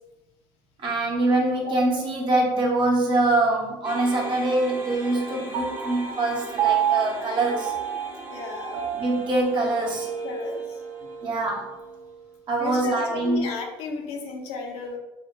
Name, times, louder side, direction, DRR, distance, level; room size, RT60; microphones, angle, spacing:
voice 1, 0.8-7.7 8.9-10.1 11.2-11.7 12.5-13.5, right 2 dB, 50° right, -1 dB, 0.9 m, -24 dB
sound 1, 3.8-12.1, right 2 dB, 15° right, 0.7 m, -41 dB
Piano, 5.5-12.2, right 9 dB, 70° right, 0.5 m, -30 dB
voice 2, 8.3-8.8 10.2-10.8 12.6-15.0, left 4 dB, 70° left, 1 dB, 0.6 m, -34 dB
2.8 x 2.1 x 3.5 m, 1.0 s
supercardioid pair, 75°, 11 cm